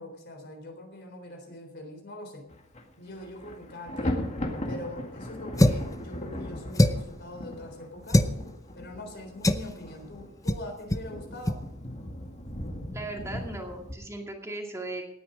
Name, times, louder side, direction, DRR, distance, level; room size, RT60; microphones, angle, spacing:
voice 1, 0.0-2.5 3.0-4.3 4.7-8.3 8.7-11.6, left 1 dB, 55° left, 5 dB, 3.7 m, -43 dB
Thunder, 2.5-2.8 3.1-13.9, left 1 dB, 35° left, 2.0 m, -37 dB
sound 1, 5.6-5.9 6.7-7.2 8.1-8.4 9.4-9.7 10.5-10.6 10.9-11.1 11.4-11.6, left 1 dB, 15° left, 0.7 m, -22 dB
voice 2, 12.9-15.1, right 2 dB, 15° right, 1 dB, 2.2 m, -37 dB
18.0 x 9.6 x 5.2 m, 0.83 s
head